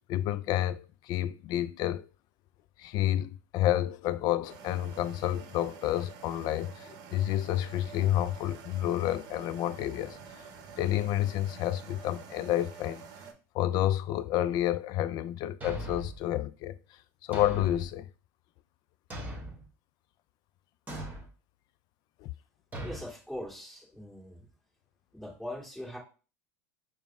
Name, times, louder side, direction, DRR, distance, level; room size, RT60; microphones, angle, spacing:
voice 1, 0.1-2.1 2.8-10.2 10.8-13.0 13.5-16.8 17.3-18.1 22.2-22.3, left 13 dB, 50° left, 0.3 m, -29 dB
sound 1, 4.5-13.3, right 6 dB, 50° right, 0.8 m, -48 dB
Thump thud, 15.6-16.2 17.3-17.9 19.1-19.7 20.9-21.3 22.7-23.1, right 1 dB, 20° right, 1.3 m, -39 dB
voice 2, 22.8-24.5 25.1-26.0, left 1 dB, 5° left, 1.8 m, -41 dB
5.0 x 2.0 x 3.5 m
hypercardioid pair, 95°, 9 cm